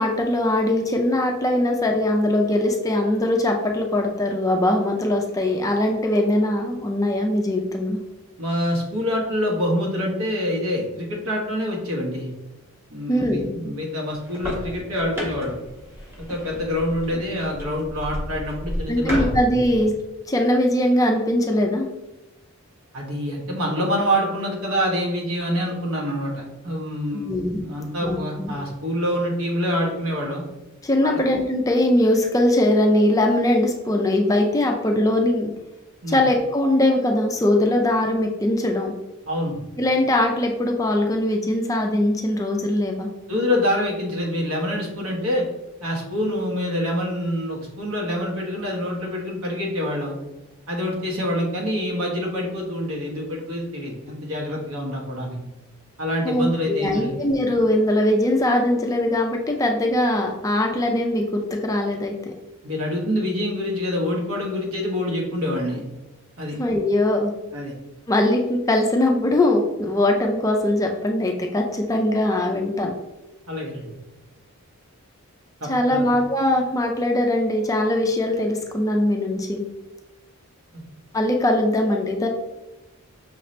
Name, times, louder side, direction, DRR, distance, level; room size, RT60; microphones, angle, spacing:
voice 1, 0.0-8.0 13.1-13.5 18.9-19.9 20.3-21.9 27.1-27.6 28.0-28.5 30.8-35.5 36.1-38.9 39.8-43.1 56.2-62.3 66.6-67.3 68.1-72.9 75.7-79.6 81.1-82.3, left 1 dB, 15° left, 2 dB, 0.4 m, -21 dB
voice 2, 8.4-12.3 12.9-15.5 16.3-19.3 22.9-30.4 31.0-31.2 36.0-36.2 39.3-39.6 43.3-45.4 45.8-50.2 50.7-55.4 56.0-57.2 62.6-65.8 66.4-66.6 67.5-67.7 73.5-73.9 75.6-76.1 80.7-80.8, equal, 75° right, -2 dB, 1.2 m, -26 dB
sound 1, 14.1-19.8, equal, 10° right, 0.9 m, -32 dB
5.7 x 2.7 x 3.1 m, 1.0 s
head